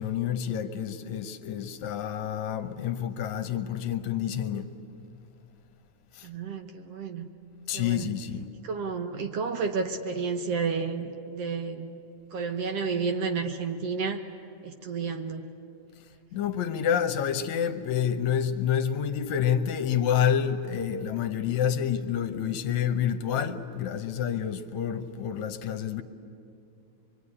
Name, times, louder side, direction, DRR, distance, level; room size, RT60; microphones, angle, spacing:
voice 1, 0.0-4.7 6.2-6.3 7.7-8.5 16.3-26.0, left 8 dB, 75° left, 2.1 m, -28 dB
voice 2, 6.2-7.3 7.7-8.1 8.6-12.0 12.3-14.2 14.6-15.5, right 5 dB, 65° right, 1.9 m, -31 dB
24.0 x 23.5 x 9.8 m
omnidirectional pair, 3.4 m